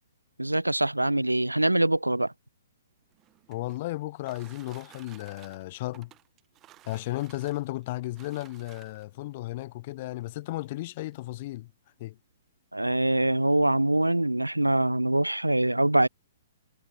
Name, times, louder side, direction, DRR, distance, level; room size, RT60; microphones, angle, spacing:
voice 1, 0.4-2.3 12.7-16.1, right 1 dB, 85° right, 0.4 m, -24 dB
sound 1, 3.0-9.2 10.1-10.2 10.6-10.7 11.0-11.4, right 14 dB, 25° right, 4.7 m, -56 dB
voice 2, 3.5-6.1 6.9-11.7 12.0-12.2, left 18 dB, 40° left, 2.1 m, -34 dB
figure-of-eight pair, 120°, 0 cm